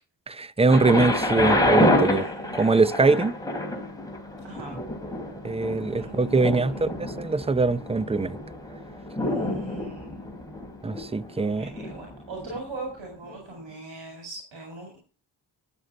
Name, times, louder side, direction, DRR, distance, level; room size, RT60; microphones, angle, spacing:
voice 1, 0.4-2.3 2.6-3.4 5.4-8.4 10.8-11.7, right 3 dB, 15° right, 0.6 m, -22 dB
Thunder, 0.7-12.5 13.3-13.4, left 1 dB, 10° left, 3.3 m, -28 dB
voice 2, 2.1-3.0 4.4-4.8 5.9-7.0 9.1-10.2 11.3-15.0, right 2 dB, 85° right, 4.3 m, -41 dB
11.5 x 7.8 x 5.4 m
cardioid pair, 70°, 44 cm